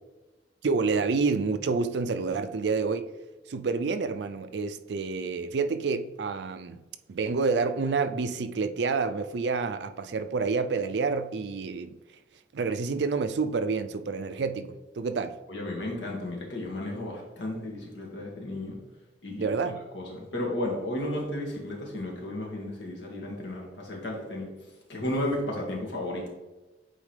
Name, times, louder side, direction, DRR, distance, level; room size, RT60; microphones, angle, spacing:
voice 1, 0.6-3.1 3.5-6.8 7.1-11.9 12.5-15.4 19.4-19.8, right 4 dB, 65° right, 0.4 m, -28 dB
voice 2, 15.5-18.8 19.2-19.5 19.9-24.5 24.9-26.3, left 1 dB, 80° left, 2.0 m, -33 dB
8.8 x 4.0 x 3.3 m
head